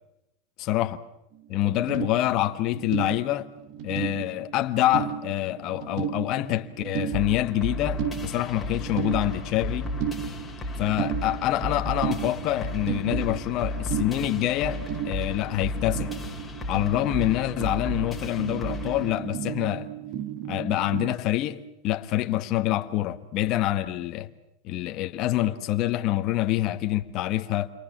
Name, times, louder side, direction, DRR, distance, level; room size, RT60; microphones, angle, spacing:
sound 1, 1.3-1.4 1.6-21.2, right 9 dB, 45° right, 1.3 m, -34 dB
voice 1, 1.5-3.5 3.8-9.9 10.8-16.1 16.7-19.9 20.5-24.3 24.6-27.7, left 14 dB, 40° left, 1.3 m, -26 dB
sound 2, 7.1-19.1, left 1 dB, 5° left, 2.9 m, -34 dB
29.0 x 23.5 x 7.4 m
supercardioid pair, 165°, 0 cm